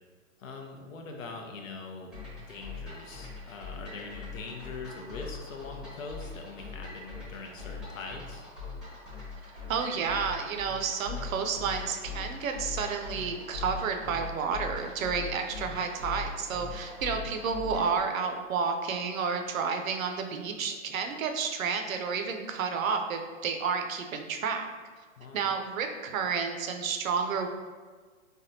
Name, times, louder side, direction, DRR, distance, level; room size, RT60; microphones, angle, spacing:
voice 1, 0.4-8.4 25.2-25.5, left 4 dB, 80° left, 2 dB, 0.6 m, -42 dB
sound 1, 2.1-18.0, left 4 dB, ahead, 0.7 m, -41 dB
voice 2, 9.7-24.7 25.3-27.5, right 5 dB, 90° right, 5 dB, 0.5 m, -31 dB
3.4 x 2.1 x 2.6 m, 1.5 s
hypercardioid pair, 140°, 39 cm